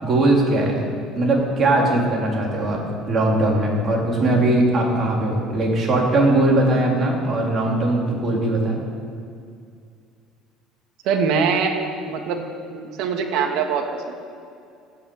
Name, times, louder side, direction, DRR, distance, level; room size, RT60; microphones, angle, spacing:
voice 1, 0.0-0.8 1.2-2.8 3.1-8.8, right 2 dB, 30° right, -2 dB, 3.9 m, -20 dB
voice 2, 11.0-11.7 12.1-12.4 12.7-14.2, right 6 dB, 70° right, 3 dB, 2.2 m, -23 dB
14.5 x 9.6 x 9.0 m, 2.3 s
cardioid pair, 140°, 0 cm